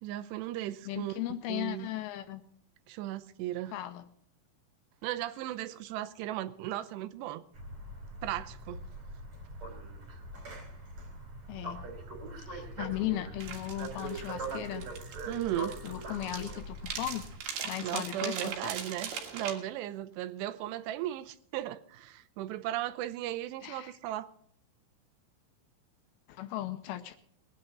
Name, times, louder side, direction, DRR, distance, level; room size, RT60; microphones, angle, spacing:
voice 1, 0.0-1.2 1.5-1.9 2.9-3.7 5.0-7.4 8.2-8.8 15.3-15.7 17.8-24.3, right 13 dB, 90° right, 2.9 m, -36 dB
voice 2, 0.9-2.4 3.7-4.1 11.5-11.8 12.4-14.8 15.8-17.3 17.6-18.7 23.6-23.9 26.3-27.2, left 14 dB, 80° left, 2.3 m, -37 dB
sound 1, 7.5-17.4, right 2 dB, 45° right, 3.7 m, -42 dB
sound 2, 13.4-19.5, right 7 dB, 70° right, 3.6 m, -40 dB
21.0 x 9.8 x 3.9 m
omnidirectional pair, 4.8 m